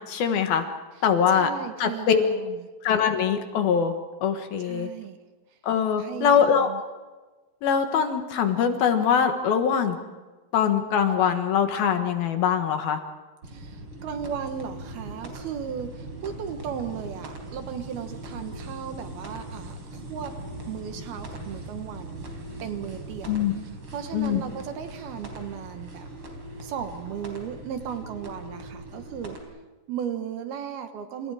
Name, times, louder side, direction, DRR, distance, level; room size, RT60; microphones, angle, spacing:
voice 1, 0.1-0.6 1.0-1.5 1.8-2.2 2.8-3.9 4.2-4.9 5.6-6.7 7.6-10.0 10.5-13.0 23.3-23.5 24.1-24.4, left 7 dB, 70° left, 6 dB, 3.2 m, -22 dB
voice 2, 1.3-2.6 4.6-5.2 6.0-6.8 13.4-20.3 20.7-22.3 22.6-26.1 26.6-29.4 29.9-31.3, right 8 dB, 70° right, 7 dB, 3.1 m, -36 dB
sound 1, 13.4-29.4, right 1 dB, 35° right, 4.7 m, -40 dB
28.5 x 28.5 x 4.9 m, 1.2 s
omnidirectional pair, 4.7 m